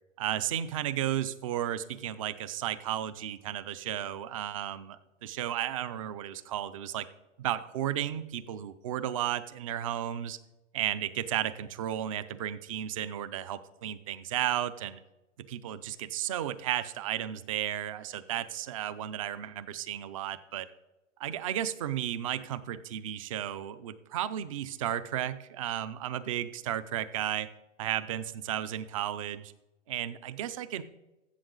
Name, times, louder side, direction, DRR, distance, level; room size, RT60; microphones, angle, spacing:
voice 1, 0.2-7.1 7.4-10.4 10.7-15.0 15.5-20.7 21.2-27.5 27.8-29.5 29.9-30.8, right 11 dB, 30° right, 15 dB, 0.4 m, -33 dB
14.5 x 7.5 x 3.8 m, 1.0 s
hypercardioid pair, 145°, 38 cm